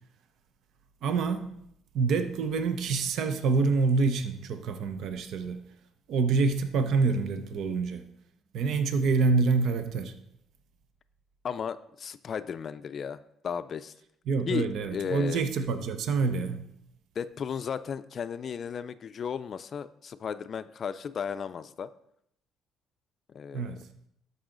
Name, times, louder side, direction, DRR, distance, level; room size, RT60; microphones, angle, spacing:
voice 1, 1.0-1.6 1.9-5.6 6.1-8.1 8.5-10.1 14.3-16.6 23.5-23.8, right 4 dB, 70° right, 9 dB, 0.7 m, -26 dB
voice 2, 11.4-13.9 14.5-15.4 17.2-21.9 23.3-23.7, left 7 dB, 45° left, 13 dB, 0.4 m, -35 dB
13.0 x 5.5 x 3.8 m, 0.74 s
cardioid pair, 100°, 0 cm